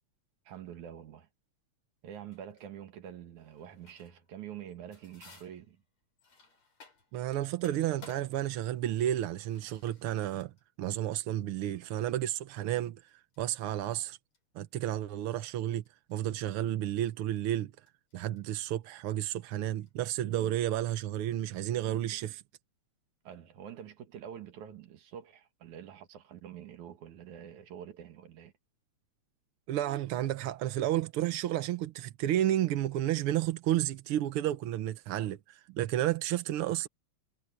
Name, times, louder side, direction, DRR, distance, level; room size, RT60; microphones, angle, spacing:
voice 1, 0.5-1.3 2.0-5.8 23.2-28.5, right 9 dB, 85° right, 3.1 m, -46 dB
sound 1, 2.3-2.7 3.4-4.3 4.6-7.3 7.6-19.9, left 3 dB, 65° left, 8.2 m, -59 dB
voice 2, 7.1-10.5 10.8-13.0 13.4-14.2 14.5-15.8 16.1-17.7 18.1-22.4 29.7-36.9, right 13 dB, 70° right, 1.4 m, -31 dB
omnidirectional pair, 3.3 m